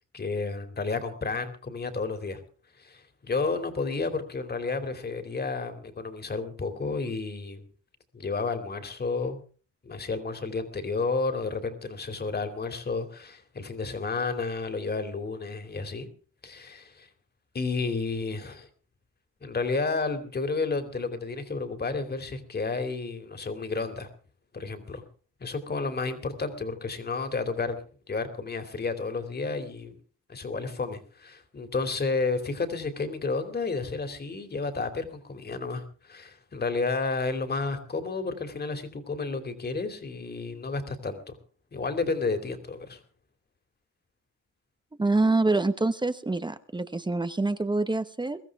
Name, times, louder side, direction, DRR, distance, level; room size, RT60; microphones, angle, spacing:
voice 1, 0.1-2.4 2.8-7.6 8.1-9.4 9.8-16.1 16.4-17.1 17.5-18.7 19.4-24.1 24.5-25.0 25.4-27.8 28.1-30.0 30.3-41.4 41.7-43.0, left 4 dB, 35° left, 7 dB, 2.8 m, -31 dB
voice 2, 45.0-48.4, right 2 dB, 15° right, 11 dB, 1.0 m, -26 dB
23.0 x 13.5 x 3.6 m, 0.39 s
cardioid pair, 90°, 30 cm